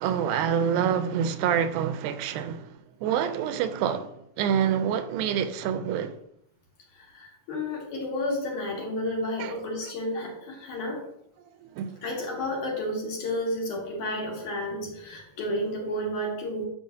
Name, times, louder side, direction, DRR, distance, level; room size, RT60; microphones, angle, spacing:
voice 1, 0.0-2.7 3.0-6.1 9.4-9.5 11.8-11.9, right 8 dB, 85° right, 2.4 m, -26 dB
voice 2, 7.0-11.0 12.0-16.7, left 1 dB, 60° left, 3.3 m, -31 dB
10.5 x 6.8 x 2.7 m
omnidirectional pair, 4.1 m